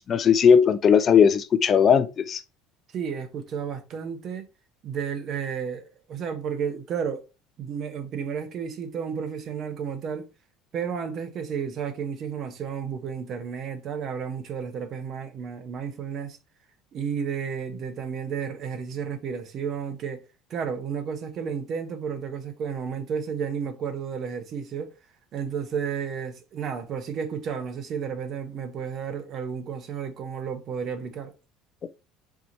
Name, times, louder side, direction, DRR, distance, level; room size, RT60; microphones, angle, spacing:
voice 1, 0.1-2.4, left 7 dB, 40° left, 0.5 m, -18 dB
voice 2, 2.9-4.5 4.8-7.2 7.6-10.3 10.7-16.4 16.9-20.2 20.5-24.9 25.3-31.3, right 7 dB, 50° right, 0.9 m, -32 dB
4.7 x 2.8 x 3.9 m
supercardioid pair, 90°, 0 cm